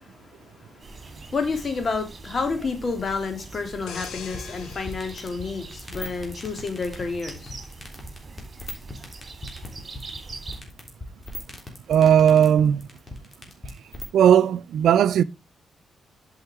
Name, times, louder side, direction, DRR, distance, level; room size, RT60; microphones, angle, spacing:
voice 1, 0.0-7.6, left 4 dB, 50° left, 2.6 m, -30 dB
sound 1, 0.8-10.6, right 3 dB, 40° right, 2.7 m, -43 dB
sound 2, 3.9-6.5 7.0-7.2, left 7 dB, 80° left, 1.2 m, -42 dB
sound 3, 3.9-14.1, left 1 dB, 25° left, 3.4 m, -38 dB
voice 2, 11.9-12.9 14.1-15.2, right 9 dB, 75° right, 0.4 m, -17 dB
8.1 x 5.6 x 4.8 m
supercardioid pair, 50°, 0 cm